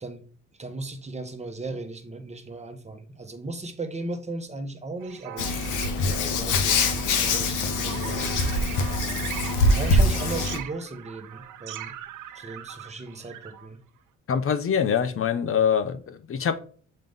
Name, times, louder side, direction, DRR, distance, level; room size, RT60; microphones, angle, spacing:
voice 1, 0.6-5.6 6.4-8.2 9.8-12.0 12.3-13.8, right 2 dB, 20° right, 1.2 m, -36 dB
sound 1, 5.0-13.7, right 11 dB, 85° right, 0.8 m, -40 dB
Hands, 5.4-10.6, left 2 dB, 90° left, 1.1 m, -24 dB
voice 2, 14.3-16.6, left 7 dB, 45° left, 0.9 m, -24 dB
7.8 x 3.7 x 3.6 m
cardioid pair, 90°, 30 cm